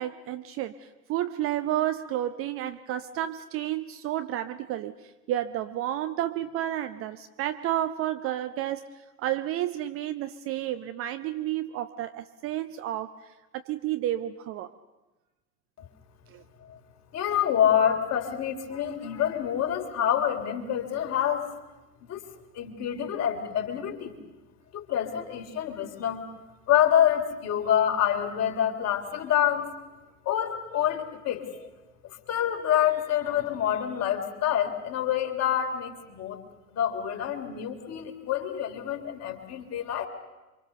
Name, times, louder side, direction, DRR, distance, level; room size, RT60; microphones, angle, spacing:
voice 1, 0.0-8.9 9.2-13.1 13.5-14.7 16.3-16.4, right 13 dB, 30° right, 10 dB, 0.7 m, -31 dB
voice 2, 17.1-21.5 22.1-22.2 22.5-24.2 24.7-26.2 26.7-29.7 30.2-31.7 32.0-36.4 36.7-40.1, left 10 dB, 30° left, 3 dB, 3.4 m, -27 dB
28.5 x 24.5 x 6.8 m, 1.1 s
figure-of-eight pair, 85°, 48 cm